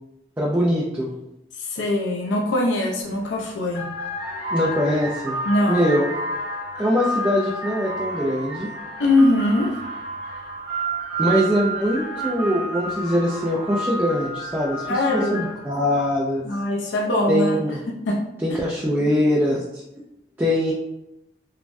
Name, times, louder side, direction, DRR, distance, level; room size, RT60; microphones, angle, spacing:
voice 1, 0.4-1.1 4.5-5.4 5.7-6.1 6.8-8.7 11.2-16.4 17.3-17.8 18.4-19.8 20.4-20.7, equal, 10° right, -5 dB, 0.3 m, -22 dB
voice 2, 1.5-3.8 5.4-5.9 9.0-9.8 14.9-15.5 16.4-17.6 17.9-18.2 18.5-18.6, left 1 dB, 80° left, 0 dB, 0.5 m, -22 dB
sound 1, 3.0-3.3 3.7-15.8, right 1 dB, 25° right, 0.8 m, -30 dB
3.2 x 2.1 x 2.5 m, 0.87 s
head